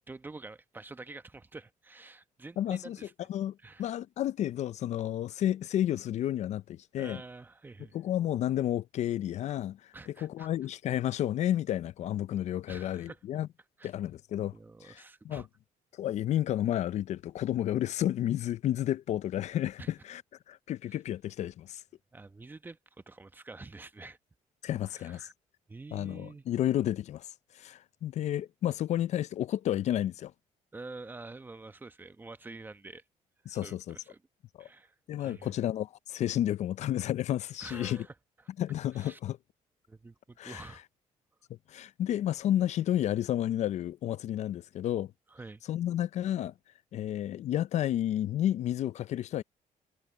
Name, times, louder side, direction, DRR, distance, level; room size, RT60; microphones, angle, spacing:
voice 1, 0.1-3.3 3.6-3.9 7.0-8.0 9.9-10.5 12.7-13.2 13.8-13.9 14.5-15.5 19.8-19.9 22.1-24.2 24.9-25.3 25.7-26.4 30.7-33.0 33.4-34.2 34.6-35.5 37.6-38.1 38.9-39.2 39.9-40.8 45.3-45.6, right 3 dB, 15° right, 1.0 m, -47 dB
voice 2, 2.6-3.0 3.3-7.2 7.9-13.5 13.8-14.5 14.8-15.5 15.9-20.2 20.5-21.8 24.6-25.3 25.9-27.3 27.5-30.3 33.5-34.0 34.6-34.7 35.1-38.1 38.6-39.4 40.4-40.6 41.7-45.1 45.7-46.5 46.9-49.4, left 12 dB, 55° left, 0.4 m, -31 dB
cardioid pair, 135°, 14 cm